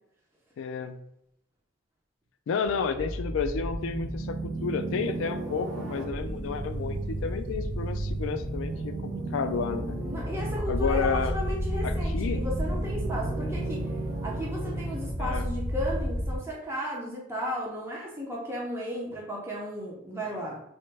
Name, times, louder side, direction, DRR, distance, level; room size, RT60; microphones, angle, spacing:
voice 1, 0.6-1.0 2.5-10.0 10.7-11.4 11.8-12.4 15.2-15.5 20.2-20.5, left 5 dB, 70° left, 9 dB, 0.3 m, -31 dB
sound 1, 2.6-16.4, right 1 dB, 70° right, 0.8 m, -32 dB
voice 2, 10.0-13.8 14.2-20.6, equal, 10° right, -4 dB, 0.5 m, -34 dB
3.1 x 2.1 x 3.2 m, 0.76 s
head